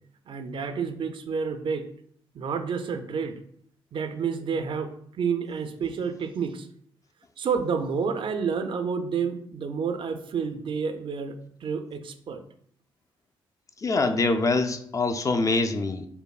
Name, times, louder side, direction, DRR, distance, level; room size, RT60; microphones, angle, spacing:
voice 1, 0.3-1.9 2.3-3.3 3.9-6.7 7.4-12.4, right 6 dB, 50° right, 8 dB, 0.4 m, -29 dB
voice 2, 13.8-16.1, left 3 dB, 30° left, 6 dB, 0.4 m, -24 dB
5.2 x 2.1 x 2.3 m, 0.66 s
supercardioid pair, 50°, 11 cm